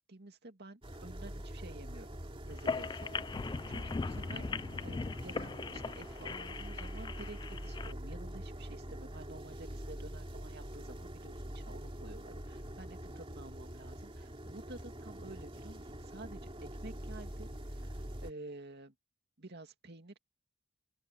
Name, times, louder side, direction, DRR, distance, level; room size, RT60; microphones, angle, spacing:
voice 1, 0.1-2.2 2.5-18.9 19.4-20.2, right 2 dB, 55° right, 2.4 m, -51 dB
sound 1, 0.8-18.3, equal, 25° right, 2.6 m, -45 dB
sound 2, 2.5-7.9, left 4 dB, 20° left, 0.3 m, -39 dB
open air
head